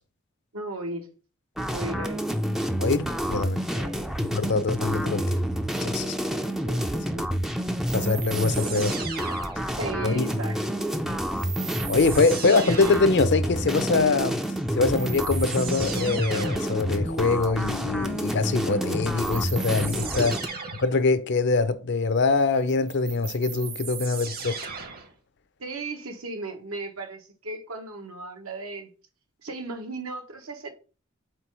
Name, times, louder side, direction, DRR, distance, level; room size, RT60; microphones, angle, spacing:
voice 1, 0.5-1.1 1.7-2.2 3.7-4.0 6.6-7.3 9.6-10.6 20.0-20.3 25.6-28.9 29.4-30.7, right 2 dB, 80° right, 1.3 m, -36 dB
sound 1, 1.6-20.5, equal, ahead, 0.4 m, -28 dB
voice 2, 2.8-3.6 4.3-5.4 5.8-6.1 7.9-9.0 10.0-10.3 11.9-14.4 14.7-20.3 20.8-24.6, left 4 dB, 55° left, 0.6 m, -24 dB
sound 2, 7.9-9.9 11.4-13.2 14.5-14.6 14.9-16.8 19.2-21.0 22.7-25.1, right 6 dB, 45° right, 1.0 m, -36 dB
4.5 x 4.1 x 5.3 m
head